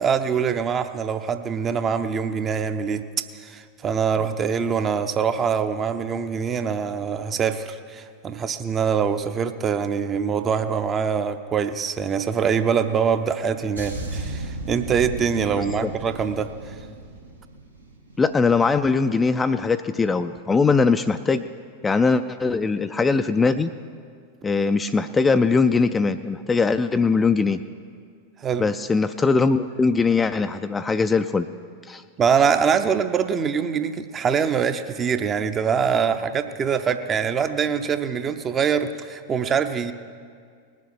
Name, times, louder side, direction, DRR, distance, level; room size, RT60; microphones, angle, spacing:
voice 1, 0.0-16.7 28.4-28.7 32.2-39.9, right 7 dB, 25° right, 9 dB, 0.6 m, -24 dB
sound 1, 13.8-18.3 18.6-18.9, right 2 dB, 85° right, 1.7 m, -35 dB
voice 2, 15.6-15.9 18.2-21.4 21.8-23.7 24.4-27.6 28.6-31.5 31.9-32.0, left 4 dB, 15° left, 9 dB, 0.3 m, -21 dB
19.5 x 7.3 x 5.8 m, 2.1 s
figure-of-eight pair, 90°, 0 cm